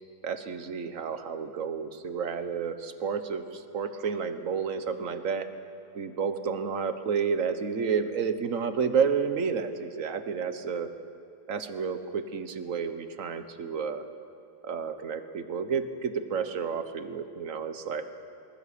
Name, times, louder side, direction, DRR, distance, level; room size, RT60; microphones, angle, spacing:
voice 1, 0.2-5.5 5.9-10.9 11.5-14.0 14.6-18.0, right 6 dB, 45° right, 9 dB, 1.3 m, -30 dB
20.5 x 19.5 x 8.5 m, 2.7 s
omnidirectional pair, 2.2 m